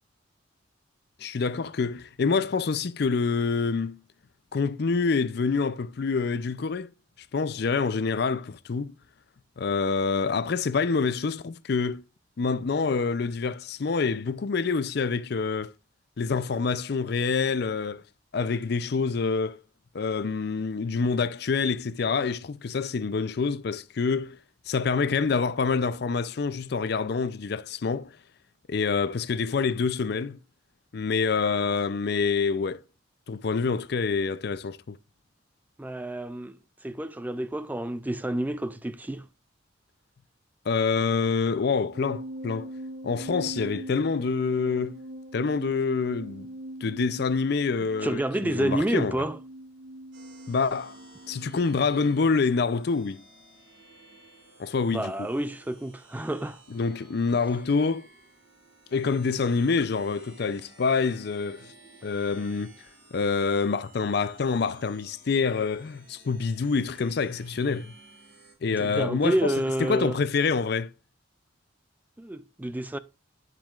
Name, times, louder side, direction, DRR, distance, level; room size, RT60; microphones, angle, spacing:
voice 1, 1.2-4.0 4.5-6.9 7.3-8.9 9.6-12.0 12.4-15.7 16.2-18.0 18.3-19.6 19.9-24.4 24.7-28.1 28.7-30.4 30.9-32.8 33.3-35.0 40.7-42.7 43.0-45.0 45.3-46.5 46.8-49.2 50.5-51.0 51.3-53.2 54.6-55.1 56.7-58.1 58.9-61.7 62.0-62.7 63.1-67.9 68.6-69.5 69.8-70.9, left 4 dB, 55° left, 0.5 m, -26 dB
voice 2, 35.8-39.3 48.0-49.4 54.9-56.6 68.8-70.2 72.2-73.0, right 1 dB, 10° right, 0.3 m, -29 dB
sound 1, 41.9-51.6, right 1 dB, 60° right, 0.7 m, -42 dB
sound 2, 50.1-68.5, right 3 dB, 75° right, 5.2 m, -55 dB
9.2 x 7.5 x 2.4 m
head